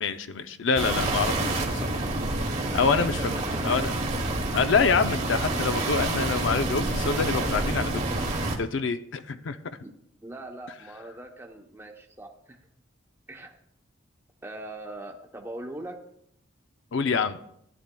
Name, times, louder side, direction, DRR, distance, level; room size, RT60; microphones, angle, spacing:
voice 1, 0.0-2.0 2.7-3.2 3.6-3.9 4.5-7.9 8.2-9.6 16.9-17.4, left 5 dB, 65° left, 10 dB, 0.5 m, -26 dB
sound 1, 0.8-8.6, right 2 dB, 35° right, 1.0 m, -28 dB
voice 2, 3.2-3.9 9.8-9.9 10.2-12.6 13.3-13.6 14.4-16.0, right 1 dB, 10° right, 1 dB, 0.8 m, -41 dB
14.5 x 10.5 x 2.2 m, 0.74 s
head